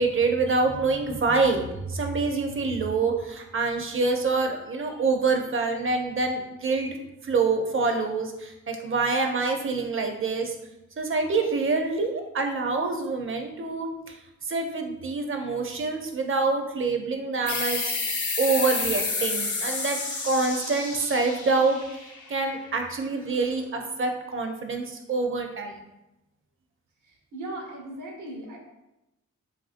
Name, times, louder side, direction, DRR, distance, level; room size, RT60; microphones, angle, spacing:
voice 1, 0.0-7.0 7.2-10.6 11.0-14.2 14.5-17.9 18.4-20.0 20.2-21.8 22.3-25.7, right 3 dB, 40° right, 4 dB, 0.5 m, -26 dB
sound 1, 17.5-22.7, left 4 dB, 70° left, 0.6 m, -30 dB
voice 2, 27.0-28.6, right 1 dB, 80° right, 0 dB, 0.8 m, -38 dB
2.9 x 2.5 x 2.5 m, 0.92 s
cardioid pair, 45°, 31 cm